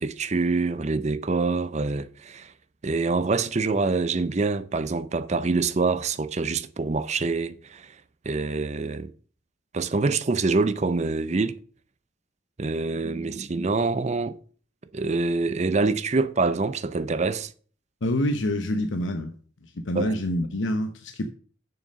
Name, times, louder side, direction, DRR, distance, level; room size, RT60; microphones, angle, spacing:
voice 1, 0.0-2.5 2.8-7.9 8.2-9.1 9.7-11.6 12.6-14.3 14.9-17.5 20.0-20.2, right 3 dB, 35° right, 0.6 m, -25 dB
voice 2, 18.0-19.3 19.6-21.3, left 1 dB, 75° left, 0.8 m, -27 dB
6.8 x 6.6 x 6.4 m
head